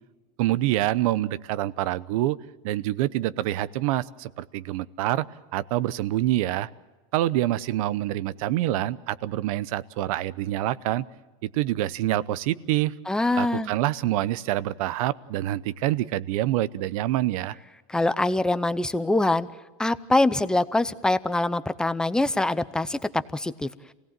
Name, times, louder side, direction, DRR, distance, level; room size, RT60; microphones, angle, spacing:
voice 1, 0.4-2.4 2.6-5.3 5.5-6.7 7.1-11.0 11.4-12.9 13.4-17.6, right 14 dB, 75° right, 17 dB, 0.8 m, -26 dB
voice 2, 13.1-13.7 17.9-19.5 19.8-23.7, left 2 dB, 5° left, 13 dB, 0.6 m, -24 dB
27.0 x 17.5 x 7.5 m, 1.2 s
supercardioid pair, 140°, 18 cm